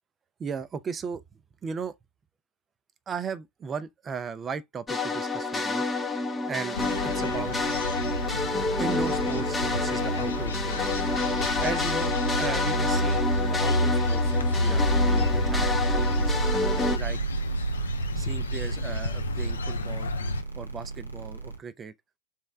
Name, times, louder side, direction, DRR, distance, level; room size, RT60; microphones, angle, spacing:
voice 1, 0.4-1.2 1.6-2.0 3.1-5.8 6.5-6.8 7.1-7.7 8.8-10.8 11.6-16.3 16.9-17.2 18.2-20.1 20.6-21.9, right 6 dB, 20° right, 0.5 m, -36 dB
sound 1, 4.9-17.0, left 3 dB, 10° left, 0.7 m, -29 dB
sound 2, 6.7-20.4, left 1 dB, 70° left, 0.5 m, -29 dB
sound 3, 14.7-21.6, right 5 dB, 85° right, 0.9 m, -33 dB
3.6 x 3.2 x 3.3 m
figure-of-eight pair, 90°, 0 cm